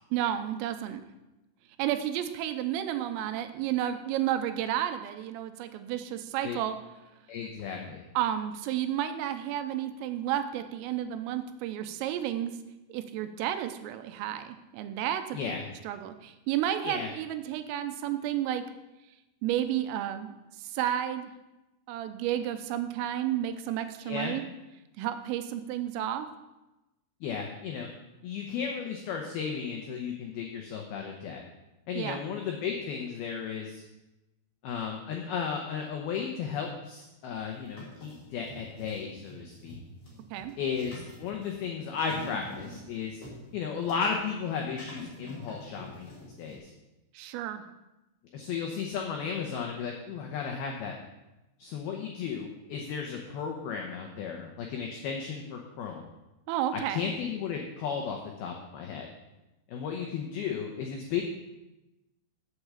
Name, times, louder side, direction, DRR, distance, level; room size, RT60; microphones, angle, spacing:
voice 1, 0.1-1.0 1.8-6.8 8.2-12.6 12.9-15.6 15.9-18.6 19.4-21.3 21.9-24.4 25.0-26.3 32.0-32.2 40.3-40.5 47.2-47.6 56.5-57.1, right 11 dB, 90° right, 9 dB, 3.4 m, -31 dB
voice 2, 7.3-8.0 15.3-15.6 16.8-17.1 24.0-24.4 27.2-27.9 28.2-31.4 31.9-33.8 34.6-39.8 40.6-43.2 43.5-46.1 46.4-46.7 48.3-51.0 51.6-56.0 56.7-59.1 59.7-61.2, left 6 dB, 85° left, 1 dB, 2.2 m, -34 dB
sound 1, 37.3-46.6, equal, 25° left, 3.2 m, -48 dB
8.1 x 7.9 x 7.2 m, 0.99 s
omnidirectional pair, 5.8 m